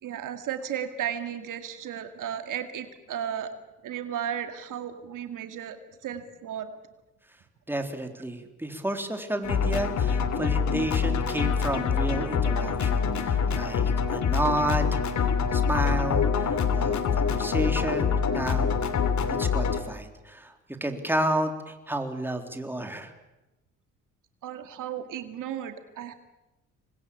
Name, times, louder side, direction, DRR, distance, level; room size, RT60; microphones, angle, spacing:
voice 1, 0.0-3.5 3.8-5.8 6.0-6.7 24.4-26.1, right 9 dB, 75° right, 8 dB, 2.3 m, -34 dB
voice 2, 7.7-18.8 19.4-20.5 20.8-23.1, right 1 dB, 5° right, 5 dB, 3.5 m, -31 dB
sound 1, 9.4-19.8, left 6 dB, 60° left, 2.9 m, -25 dB
26.0 x 21.0 x 8.6 m, 1.0 s
cardioid pair, 80°, 32 cm